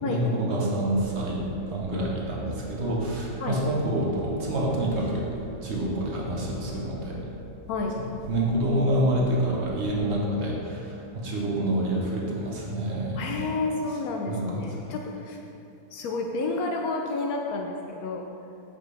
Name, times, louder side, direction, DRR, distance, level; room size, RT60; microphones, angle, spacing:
voice 1, 0.0-1.4 1.7-5.3 5.6-7.2 8.3-13.5 14.3-14.7, right 1 dB, 50° right, -3 dB, 1.2 m, -27 dB
sound 1, 0.8-10.1, left 1 dB, 30° left, 1.2 m, -44 dB
voice 2, 7.7-8.1 13.2-15.4 15.9-18.3, left 3 dB, 75° left, 1 dB, 1.1 m, -30 dB
7.2 x 5.5 x 3.3 m, 2.7 s
omnidirectional pair, 1.6 m